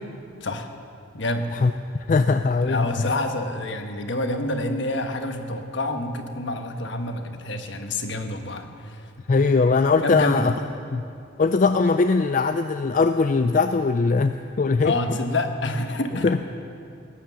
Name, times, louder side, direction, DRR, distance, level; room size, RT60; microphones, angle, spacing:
voice 1, 1.1-1.5 2.6-9.1 10.0-10.5 14.8-16.3, left 1 dB, 60° left, 6 dB, 1.3 m, -27 dB
voice 2, 2.1-3.1 9.3-10.5 10.9-11.0 11.4-15.2 16.2-16.4, left 4 dB, 40° left, 8 dB, 0.3 m, -20 dB
18.0 x 10.5 x 7.1 m, 2.5 s
head